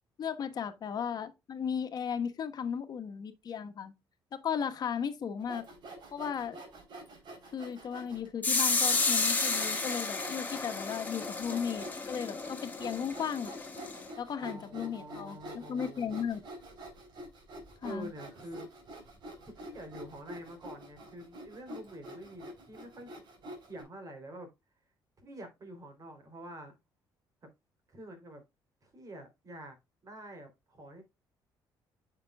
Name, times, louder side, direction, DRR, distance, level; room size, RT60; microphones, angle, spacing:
voice 1, 0.2-3.9 4.3-5.6 6.1-6.6 7.5-13.5 14.2-16.4 17.8-18.1, left 7 dB, 50° left, 1.3 m, -35 dB
Sawing, 5.4-8.3 8.9-9.0 9.5-23.8, right 1 dB, 60° right, 3.6 m, -47 dB
sound 1, 8.4-14.1, left 3 dB, 20° left, 1.6 m, -32 dB
voice 2, 14.4-16.3 17.8-18.7 19.5-23.1 23.7-24.5 25.2-26.8 27.4-27.5 27.9-28.4 28.8-29.8 30.0-31.0, right 1 dB, 45° right, 3.3 m, -47 dB
8.9 x 5.9 x 2.3 m
cardioid pair, 90°, 8 cm